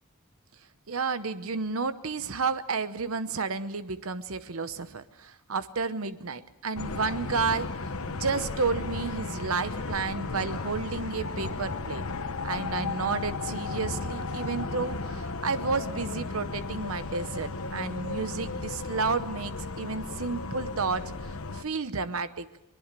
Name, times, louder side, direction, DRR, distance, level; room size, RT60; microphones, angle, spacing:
voice 1, 0.9-7.7 8.1-12.0 12.4-22.5, right 4 dB, 75° right, 12 dB, 0.9 m, -31 dB
sound 1, 6.7-21.6, left 3 dB, 75° left, 1.2 m, -35 dB
22.5 x 21.5 x 7.5 m, 0.86 s
head